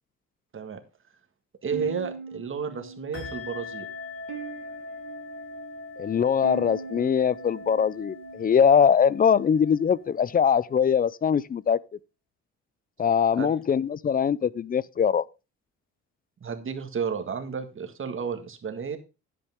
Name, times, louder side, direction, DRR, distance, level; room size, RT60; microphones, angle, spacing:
voice 1, 1.6-3.9 13.4-13.6 16.4-19.0, right 6 dB, 45° right, 1.7 m, -32 dB
sound 1, 1.7-8.8, right 4 dB, 85° right, 1.8 m, -42 dB
sound 2, 3.1-11.3, left 3 dB, 45° left, 3.9 m, -42 dB
voice 2, 6.0-11.8 13.0-15.3, left 7 dB, 30° left, 0.4 m, -22 dB
10.0 x 8.5 x 3.5 m
cardioid pair, 90°, 30 cm